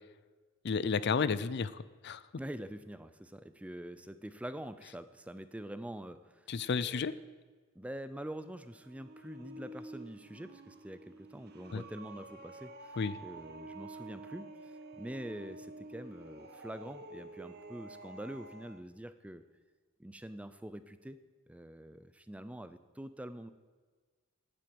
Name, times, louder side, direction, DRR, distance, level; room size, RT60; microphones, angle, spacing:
voice 1, 0.6-2.2 6.5-7.1 11.7-11.8 13.0-13.2, left 5 dB, 50° left, 16 dB, 0.5 m, -32 dB
voice 2, 2.4-6.5 6.8-7.1 7.8-13.0 13.2-19.4 20.0-21.2 21.5-23.5, right 1 dB, 5° right, 12 dB, 0.4 m, -45 dB
sound 1, 8.3-18.8, right 2 dB, 45° right, 0.9 m, -50 dB
10.5 x 7.7 x 8.7 m, 1.4 s
head